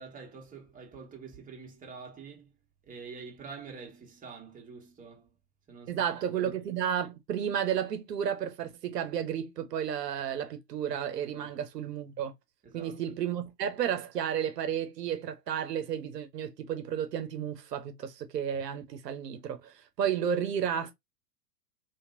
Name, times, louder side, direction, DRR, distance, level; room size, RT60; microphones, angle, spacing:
voice 1, 0.0-2.5 2.8-5.3 5.7-6.5 11.3-11.5 12.6-13.0, right 5 dB, 15° right, 1.4 m, -46 dB
voice 2, 5.9-12.3 12.7-20.9, right 9 dB, 80° right, 0.8 m, -32 dB
3.2 x 2.9 x 2.5 m
hypercardioid pair, 100°, 48 cm